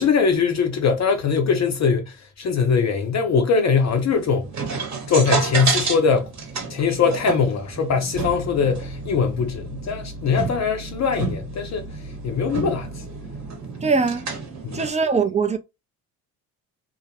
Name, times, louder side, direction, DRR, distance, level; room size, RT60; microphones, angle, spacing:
voice 1, 0.0-4.5 5.1-6.3 6.7-13.0 14.6-14.8, left 5 dB, 45° left, 0.6 m, -21 dB
sound 1, 3.8-14.9, right 4 dB, 40° right, 1.0 m, -30 dB
voice 2, 13.8-14.3 14.7-15.6, right 4 dB, 20° right, 0.4 m, -21 dB
2.2 x 2.0 x 2.8 m
supercardioid pair, 70°, 41 cm